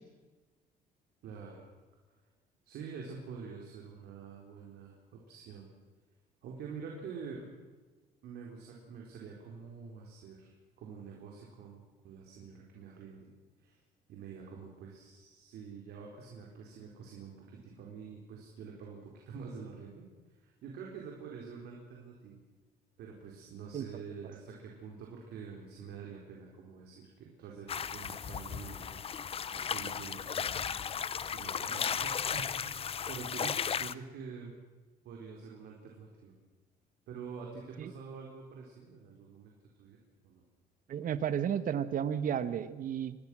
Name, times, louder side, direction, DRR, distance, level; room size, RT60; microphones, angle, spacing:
voice 1, 1.2-1.7 2.6-5.7 6.4-7.5 8.2-10.5 10.8-13.3 13.6-13.8 14.1-22.4 23.0-29.0 29.5-30.9 31.2-32.7 33.1-34.5 35.0-36.3 37.1-40.0 40.2-40.4, right 5 dB, 75° right, -1 dB, 4.4 m, -47 dB
sound 1, 27.7-33.9, left 7 dB, 35° left, 0.7 m, -35 dB
voice 2, 40.9-43.2, right 9 dB, 55° right, 13 dB, 1.5 m, -33 dB
26.5 x 20.0 x 6.3 m, 1.3 s
cardioid pair, 110°, 17 cm